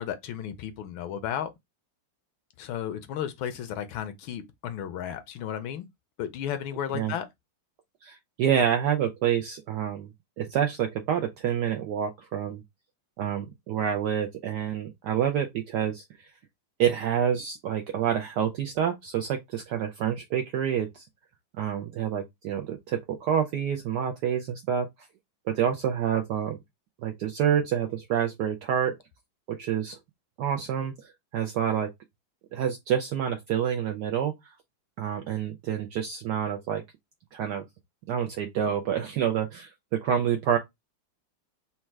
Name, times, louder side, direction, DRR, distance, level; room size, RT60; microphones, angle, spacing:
voice 1, 0.0-1.5 2.6-5.8 6.2-7.3, left 9 dB, 75° left, 1.3 m, -33 dB
voice 2, 8.0-10.1 10.4-12.6 13.2-16.3 16.8-21.1 21.6-24.9 25.5-26.6 27.0-28.9 29.5-30.0 30.4-31.9 32.5-34.3 35.0-36.8 37.3-37.6 38.1-40.6, right 9 dB, 85° right, 0.9 m, -28 dB
4.2 x 2.3 x 4.5 m
omnidirectional pair, 2.4 m